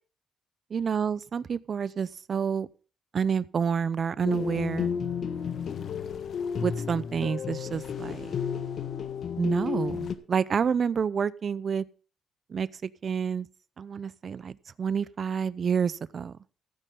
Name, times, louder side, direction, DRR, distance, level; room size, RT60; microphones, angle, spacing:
voice 1, 0.7-2.7 3.1-4.9 6.6-8.3 9.4-11.8 12.5-13.5 13.8-16.3, right 6 dB, 50° right, 19 dB, 0.7 m, -29 dB
sound 1, 4.2-10.1, left 7 dB, 60° left, 1.4 m, -32 dB
15.5 x 9.3 x 3.8 m, 0.37 s
cardioid pair, 90°, 0 cm